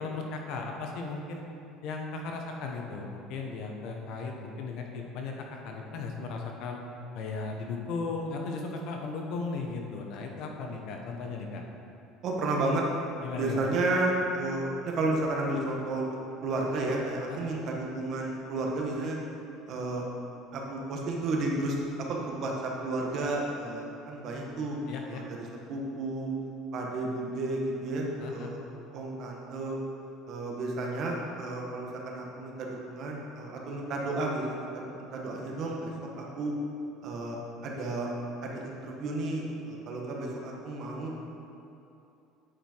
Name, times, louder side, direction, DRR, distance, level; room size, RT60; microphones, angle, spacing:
voice 1, 0.0-1.4 1.8-6.8 7.1-11.6 13.2-13.6 17.3-17.4 24.9-25.2 28.2-28.5, left 4 dB, 65° left, 2 dB, 1.0 m, -36 dB
voice 2, 12.2-12.8 13.4-16.1 16.4-19.2 19.7-20.1 20.5-24.8 25.1-26.3 26.7-28.6 28.9-29.8 30.3-36.5 37.0-38.1 38.4-41.1, right 2 dB, 50° right, -1 dB, 1.4 m, -32 dB
8.8 x 4.8 x 4.5 m, 2.7 s
supercardioid pair, 120°, 0 cm